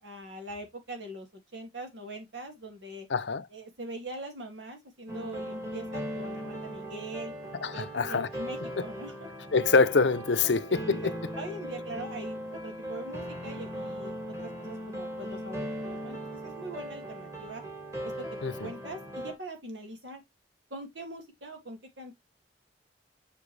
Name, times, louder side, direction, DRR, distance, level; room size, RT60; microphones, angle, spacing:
voice 1, 0.0-3.1 3.5-7.3 7.7-9.3 10.7-17.6 18.0-18.3 18.6-20.2 20.7-22.1, right 1 dB, 85° right, 2.3 m, -42 dB
voice 2, 3.1-3.5 7.6-8.3 9.5-11.3 18.4-18.7, left 4 dB, 80° left, 0.7 m, -25 dB
sound 1, 5.1-19.3, equal, 15° right, 1.7 m, -38 dB
7.0 x 4.5 x 3.2 m
head